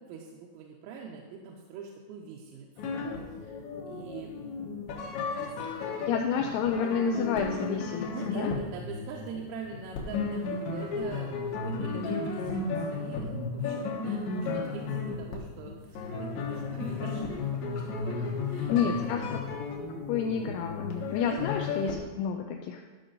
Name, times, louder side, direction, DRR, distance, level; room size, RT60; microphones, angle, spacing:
voice 1, 0.0-2.9 3.3-4.4 5.4-5.6 5.8-6.0 7.9-19.1 21.2-21.4, right 5 dB, 85° right, 0 dB, 3.4 m, -44 dB
sound 1, 2.8-22.0, left 4 dB, 70° left, 3.1 m, -34 dB
voice 2, 5.6-8.5 18.2-18.3 18.7-19.4 20.1-22.8, left 7 dB, 85° left, 3 dB, 2.7 m, -30 dB
13.0 x 5.8 x 3.9 m, 1.3 s
omnidirectional pair, 6.0 m